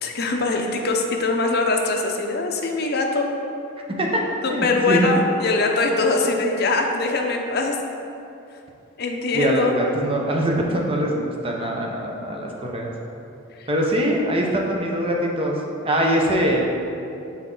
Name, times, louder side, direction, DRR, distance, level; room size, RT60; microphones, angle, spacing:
voice 1, 0.0-3.3 4.4-7.8 9.0-9.7, left 3 dB, 55° left, 2 dB, 0.6 m, -22 dB
voice 2, 4.5-5.1 9.3-12.9 13.7-15.6 15.8-16.6, right 1 dB, 30° right, -1 dB, 0.7 m, -23 dB
6.0 x 4.2 x 3.8 m, 2.7 s
head